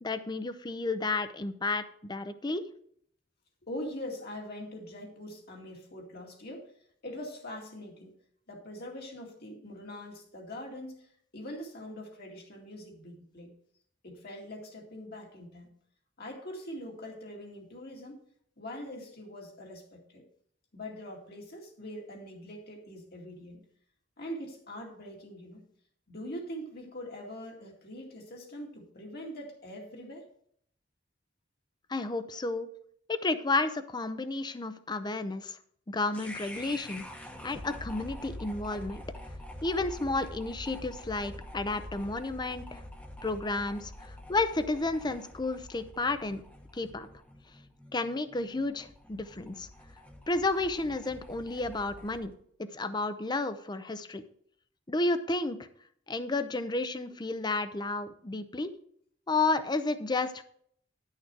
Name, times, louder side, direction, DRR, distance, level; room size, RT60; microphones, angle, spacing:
voice 1, 0.0-2.6 31.9-32.7 33.1-35.6 35.9-37.0 37.4-39.0 39.6-42.8 43.2-46.4 46.7-47.1 47.9-49.7 50.3-52.3 52.6-54.2 54.9-55.6 56.1-58.7 59.3-60.4, left 3 dB, 25° left, 11 dB, 0.6 m, -31 dB
voice 2, 3.6-6.7 7.0-8.1 8.5-13.5 14.0-15.7 16.2-18.2 18.6-20.2 20.7-23.6 24.2-25.6 26.1-30.3, equal, 55° left, 1 dB, 2.3 m, -43 dB
sound 1, 36.1-52.3, left 1 dB, 10° left, 1.1 m, -46 dB
10.5 x 6.5 x 4.6 m, 0.64 s
head